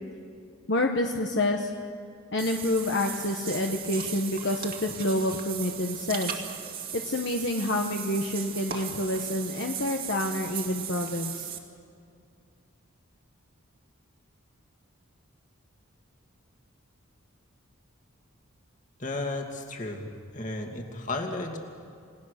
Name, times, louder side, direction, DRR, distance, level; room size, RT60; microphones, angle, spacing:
voice 1, 0.7-1.7 2.3-6.4 6.9-11.5, left 1 dB, 55° left, 2 dB, 1.2 m, -28 dB
Water / Bathtub (filling or washing), 2.4-11.6, right 8 dB, 45° right, 2.1 m, -37 dB
voice 2, 19.0-20.1 20.3-21.6, left 2 dB, 35° left, 3 dB, 2.4 m, -33 dB
29.0 x 19.0 x 6.7 m, 2.4 s
head